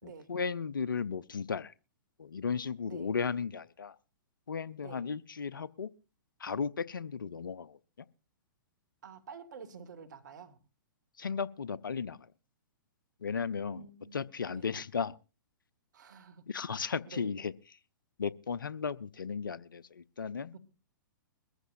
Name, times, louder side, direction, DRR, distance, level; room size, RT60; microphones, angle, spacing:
voice 1, 0.0-1.7 2.2-4.0 4.5-5.9 6.4-8.1 11.2-12.3 13.2-15.2 16.5-17.8 18.2-20.6, left 6 dB, 75° left, 0.6 m, -35 dB
voice 2, 9.0-10.6 13.7-14.7 15.9-16.5 16.8-17.3 20.5-20.6, right 6 dB, 60° right, 2.0 m, -50 dB
22.0 x 14.5 x 2.6 m
figure-of-eight pair, 115°, 11 cm